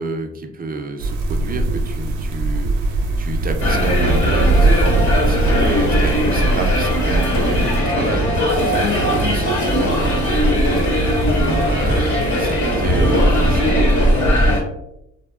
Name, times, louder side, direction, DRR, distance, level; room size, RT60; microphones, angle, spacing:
voice 1, 0.0-14.3, right 3 dB, 30° right, 5 dB, 0.4 m, -29 dB
sound 1, 1.0-7.8, right 2 dB, 85° right, 0.5 m, -20 dB
sound 2, 3.6-14.6, equal, 75° left, 1.0 m, -18 dB
sound 3, 8.5-13.7, right 1 dB, 40° left, 1.0 m, -25 dB
2.9 x 2.1 x 2.3 m, 0.80 s
cardioid pair, 90°, 30 cm